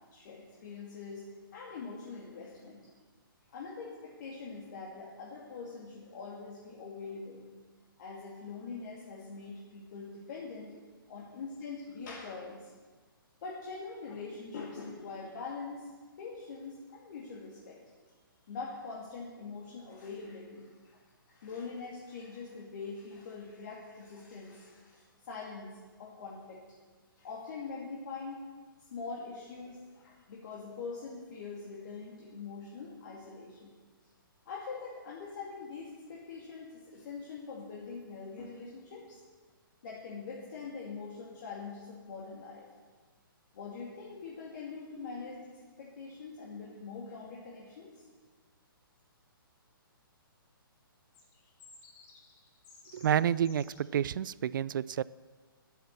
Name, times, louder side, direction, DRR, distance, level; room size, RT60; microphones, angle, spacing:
voice 1, 0.1-2.8 3.5-7.4 8.0-10.7 11.1-12.7 13.4-15.9 16.2-17.8 18.5-21.0 21.3-26.6 27.2-28.4 28.9-33.7 34.5-39.2 39.8-42.6 43.5-48.0, left 4 dB, 50° left, -4 dB, 2.5 m, -43 dB
sound 1, 51.1-54.0, left 4 dB, 35° left, 2.3 m, -57 dB
voice 2, 52.9-55.0, right 9 dB, 60° right, 20 dB, 0.4 m, -29 dB
9.2 x 8.5 x 7.5 m, 1.4 s
hypercardioid pair, 140°, 12 cm